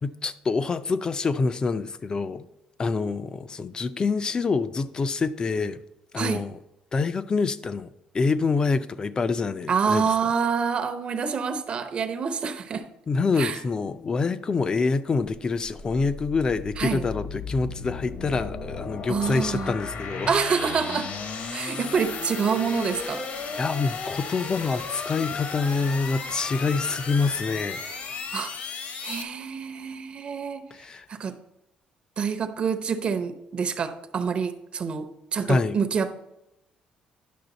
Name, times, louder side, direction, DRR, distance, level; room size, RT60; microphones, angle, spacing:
voice 1, 0.0-2.5 2.8-5.8 6.1-6.6 6.9-10.1 13.1-20.3 23.5-27.8 30.7-31.1 35.5-35.8, left 4 dB, 30° left, 0.4 m, -26 dB
voice 2, 9.7-12.9 13.4-13.6 16.8-17.1 19.1-19.7 20.3-21.1 21.5-23.2 28.3-28.5 29.0-30.6 31.1-31.4 32.2-36.1, right 6 dB, 40° right, 0.8 m, -27 dB
sound 1, 15.6-29.2, left 5 dB, 55° left, 0.9 m, -35 dB
10.5 x 6.1 x 4.0 m
cardioid pair, 135°, 3 cm